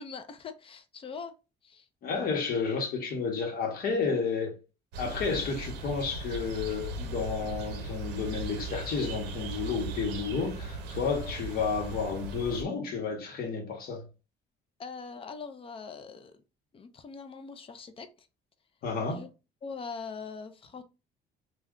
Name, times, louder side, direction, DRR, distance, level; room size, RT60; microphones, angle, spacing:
voice 1, 0.0-1.3 1.6-1.9 14.8-16.3 16.7-18.3 19.0-19.3 19.6-20.8, left 5 dB, 35° left, 0.4 m, -42 dB
voice 2, 2.0-4.6 5.0-14.1 18.8-19.3, left 5 dB, 60° left, 1.0 m, -31 dB
sound 1, 4.9-12.6, right 2 dB, 90° right, 0.6 m, -38 dB
2.3 x 2.2 x 3.6 m
cardioid pair, 110°, 17 cm